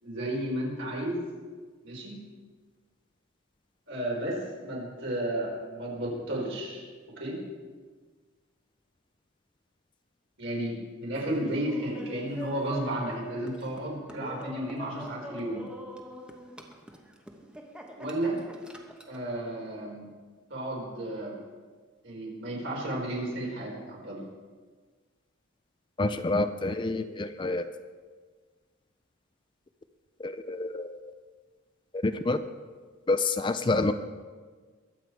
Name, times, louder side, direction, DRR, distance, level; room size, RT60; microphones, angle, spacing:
voice 1, 0.0-1.3 1.8-2.2 3.9-6.9 7.1-7.4 10.4-15.6 18.0-18.4 19.1-20.1 20.5-21.4 22.0-24.2, right 1 dB, 65° right, -2 dB, 4.5 m, -33 dB
Laughter, 11.1-19.2, equal, 5° right, 1.0 m, -44 dB
voice 2, 26.0-27.7 30.2-30.9 31.9-32.4 33.1-33.9, left 2 dB, 25° left, 10 dB, 0.5 m, -28 dB
21.5 x 8.3 x 4.6 m, 1.5 s
head